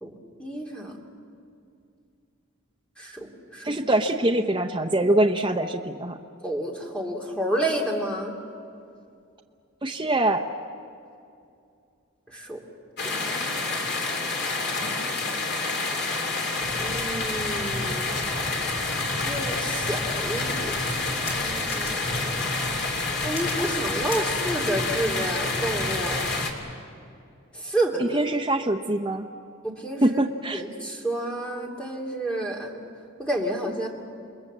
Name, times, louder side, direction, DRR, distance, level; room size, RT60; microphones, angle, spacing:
voice 1, 0.4-1.0 3.0-3.3 3.5-3.8 6.4-8.3 12.3-12.6 13.0-13.5 16.8-18.2 19.2-20.8 21.3-22.7 23.2-26.4 27.5-28.2 29.6-30.2 30.5-32.7 33.2-33.9, right 1 dB, 5° left, -1 dB, 2.6 m, -30 dB
voice 2, 3.6-6.2 9.8-10.5 28.0-29.3 30.0-30.6, right 1 dB, 20° right, 4 dB, 0.7 m, -23 dB
sound 1, 13.0-26.5, left 3 dB, 50° left, 2.7 m, -28 dB
sound 2, 16.6-26.5, equal, 30° left, 5.4 m, -36 dB
28.5 x 21.0 x 7.4 m, 2.4 s
head